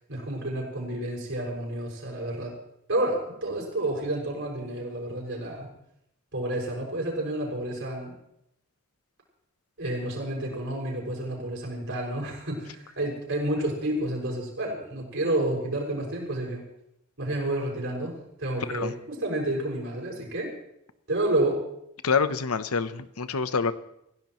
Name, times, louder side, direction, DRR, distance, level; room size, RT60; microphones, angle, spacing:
voice 1, 0.1-2.5 2.9-5.7 6.3-8.1 9.8-16.6 17.2-20.5 21.1-21.6, right 1 dB, 60° right, -1 dB, 6.2 m, -30 dB
voice 2, 22.0-23.7, left 5 dB, 85° left, 12 dB, 0.9 m, -26 dB
26.5 x 16.0 x 3.1 m, 0.80 s
head